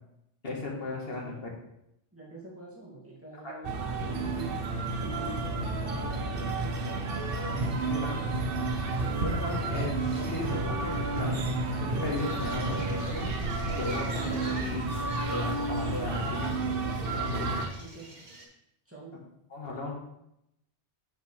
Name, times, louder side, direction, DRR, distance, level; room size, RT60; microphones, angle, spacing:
voice 1, 0.4-1.4 3.4-3.5 7.9-8.1 9.2-11.4 11.8-13.3 13.7-14.9 15.3-16.6 17.1-17.7 19.5-19.9, left 2 dB, 55° left, -2 dB, 1.9 m, -36 dB
voice 2, 1.2-1.5 2.1-4.6 4.9-7.1 7.7-8.2 17.8-18.2 18.9-19.2, right 2 dB, 10° right, -6 dB, 2.5 m, -45 dB
sound 1, 3.6-17.7, right 3 dB, 55° right, 1.0 m, -31 dB
sound 2, 4.1-13.1, right 2 dB, 85° right, 2.5 m, -52 dB
sound 3, 12.1-18.4, right 2 dB, 40° right, 1.6 m, -47 dB
8.3 x 6.2 x 3.4 m, 0.80 s
omnidirectional pair, 1.2 m